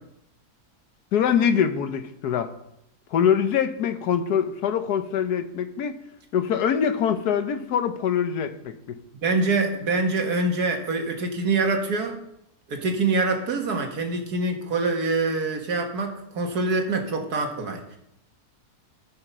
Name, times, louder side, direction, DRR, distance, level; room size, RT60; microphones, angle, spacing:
voice 1, 1.1-2.5 3.1-6.0 6.3-9.0, left 8 dB, 80° left, 9 dB, 1.4 m, -24 dB
voice 2, 9.2-12.1 12.7-18.0, right 3 dB, 75° right, 3 dB, 2.0 m, -25 dB
14.5 x 5.8 x 5.6 m, 0.78 s
omnidirectional pair, 1.7 m